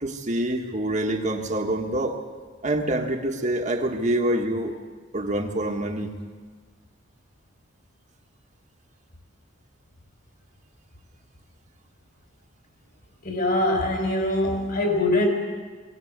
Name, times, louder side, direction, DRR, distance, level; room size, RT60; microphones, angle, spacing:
voice 1, 0.0-2.2 2.6-4.8 5.1-6.1, right 1 dB, 40° right, 2 dB, 1.5 m, -26 dB
voice 2, 13.2-15.3, left 1 dB, 50° left, 3 dB, 4.9 m, -23 dB
21.0 x 18.0 x 8.1 m, 1.5 s
head